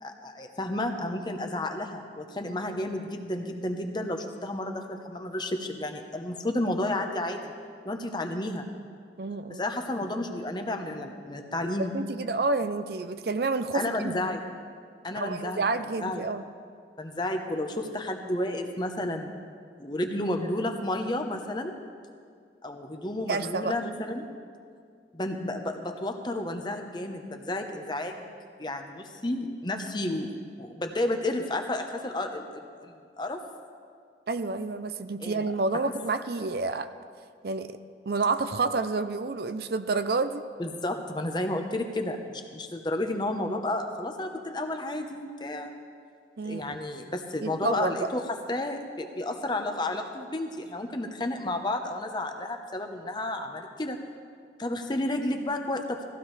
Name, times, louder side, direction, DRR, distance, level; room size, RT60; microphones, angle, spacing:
voice 1, 0.0-7.5 7.8-8.6 9.5-11.9 13.7-14.4 15.0-15.6 16.0-16.2 17.0-19.4 19.8-21.8 22.6-24.3 25.1-28.3 28.6-33.4 35.2-35.4 35.7-35.8 40.6-45.7 46.4-54.0 54.6-56.0, left 1 dB, 25° left, 5 dB, 0.9 m, -31 dB
voice 2, 9.2-9.6 11.9-14.3 15.1-16.4 23.3-23.7 34.3-36.9 37.4-37.8 38.1-40.4 46.4-46.8 47.4-48.1, right 3 dB, 55° right, 10 dB, 0.5 m, -29 dB
19.0 x 15.5 x 3.3 m, 2.2 s
head